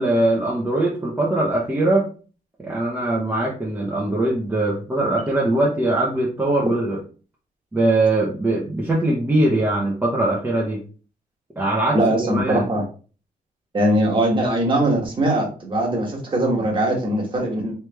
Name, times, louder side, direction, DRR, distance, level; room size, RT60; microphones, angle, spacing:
voice 1, 0.0-2.1 2.6-7.0 7.7-10.8 11.6-12.7, right 2 dB, 15° right, -4 dB, 0.7 m, -21 dB
voice 2, 11.9-12.8 13.7-17.9, right 1 dB, 35° right, -1 dB, 1.3 m, -21 dB
3.2 x 3.2 x 3.3 m, 0.38 s
wide cardioid pair, 135°, 15 cm